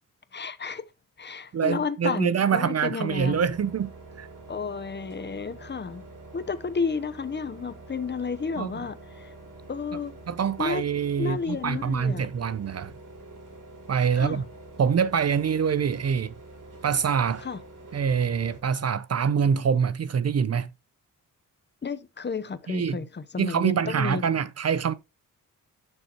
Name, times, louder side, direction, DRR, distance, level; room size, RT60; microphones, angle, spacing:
voice 1, 0.3-0.8 1.2-3.5 4.5-6.1 6.3-9.3 9.7-10.2 10.6-10.8 11.2-12.3 14.1-14.4 17.4-17.6 21.8-24.2, left 5 dB, 30° left, 0.9 m, -32 dB
voice 2, 1.5-3.9 4.2-4.3 8.6-8.8 10.3-12.9 13.9-14.4 14.8-16.3 16.8-17.4 17.9-20.7 22.7-23.0 23.4-24.9, right 7 dB, 45° right, 0.6 m, -25 dB
sound 1, 3.1-18.6, right 2 dB, 65° right, 4.0 m, -46 dB
11.5 x 6.5 x 2.9 m
cardioid pair, 100°, 34 cm